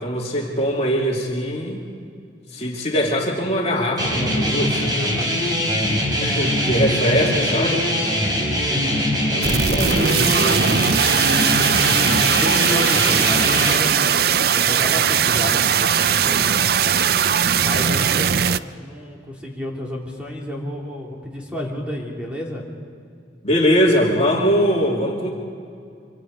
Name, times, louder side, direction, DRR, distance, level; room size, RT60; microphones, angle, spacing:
voice 1, 0.0-1.8 2.5-4.8 6.2-7.9 9.3-10.6 23.4-25.3, equal, 35° left, -2 dB, 2.6 m, -21 dB
sound 1, 4.0-13.8, equal, 25° right, 3.9 m, -22 dB
voice 2, 4.8-5.3 8.7-9.1 12.3-16.4 17.6-22.6, left 1 dB, 5° right, -3 dB, 3.2 m, -31 dB
sound 2, 9.4-18.6, right 8 dB, 55° right, 0.5 m, -19 dB
26.0 x 25.0 x 5.2 m, 2.3 s
head